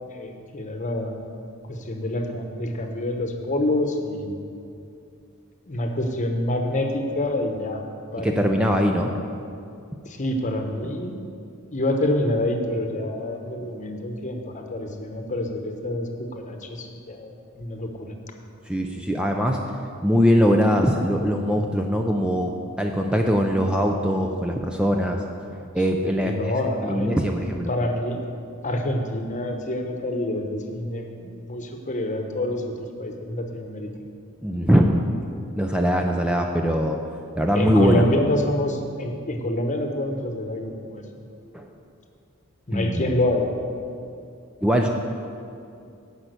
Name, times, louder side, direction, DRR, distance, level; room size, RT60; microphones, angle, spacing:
voice 1, 0.1-1.2 1.7-4.3 5.6-7.8 8.1-8.3 10.0-11.2 11.7-18.1 26.0-27.2 27.7-28.2 28.6-33.9 37.5-41.0 42.7-43.5, left 1 dB, 35° left, 4 dB, 1.0 m, -27 dB
voice 2, 8.2-9.1 18.7-19.6 20.0-25.2 25.7-26.5 26.8-27.7 34.4-35.0 35.5-37.0 37.4-38.0 41.5-41.7 42.7-43.2 44.6-44.9, equal, 5° right, 2 dB, 0.4 m, -21 dB
10.5 x 5.7 x 8.1 m, 2.5 s
head